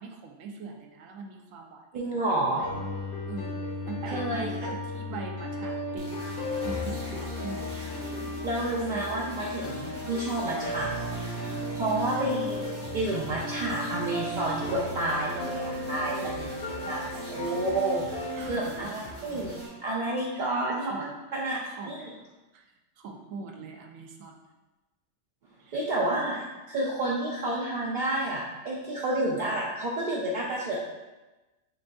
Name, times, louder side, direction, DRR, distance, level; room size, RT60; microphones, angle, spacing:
voice 1, 0.0-2.7 3.3-3.5 3.9-8.0 8.6-9.1 11.7-12.3 16.1-17.0 18.3-18.9 20.3-21.2 21.6-22.0 22.5-24.4 25.6-25.8, right 4 dB, 90° right, 2 dB, 1.0 m, -42 dB
voice 2, 1.9-2.7 4.1-4.5 8.4-10.9 11.4-16.5 16.9-18.0 18.5-21.0 21.3-21.6 21.9-22.1 25.7-30.8, right 2 dB, 65° right, -4 dB, 0.5 m, -30 dB
sound 1, 2.6-18.6, left 1 dB, 50° left, 0.8 m, -35 dB
sound 2, 6.0-19.7, equal, 35° right, 0.9 m, -43 dB
6.8 x 2.6 x 2.2 m, 1.1 s
omnidirectional pair, 1.4 m